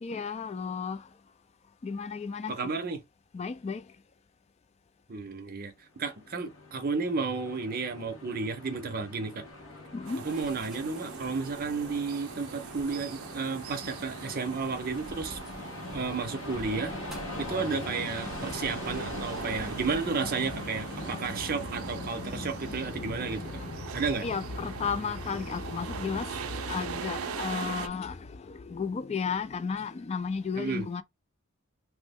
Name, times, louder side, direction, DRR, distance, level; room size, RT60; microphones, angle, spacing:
voice 1, 0.0-1.1 1.8-2.6 3.3-3.8 9.9-10.3 15.5-16.2 16.5-19.9 20.2-31.0, left 5 dB, 30° left, 0.3 m, -35 dB
voice 2, 2.5-3.0 5.1-9.4 10.2-15.4 15.9-17.0 17.4-23.4 23.9-24.3 30.6-30.9, right 4 dB, 45° right, 0.7 m, -32 dB
Train, 6.0-24.6, left 2 dB, 85° left, 1.0 m, -44 dB
sound 1, 9.4-20.9, right 1 dB, ahead, 0.9 m, -50 dB
sound 2, 10.1-27.9, right 7 dB, 85° right, 0.4 m, -41 dB
3.0 x 2.1 x 3.5 m
head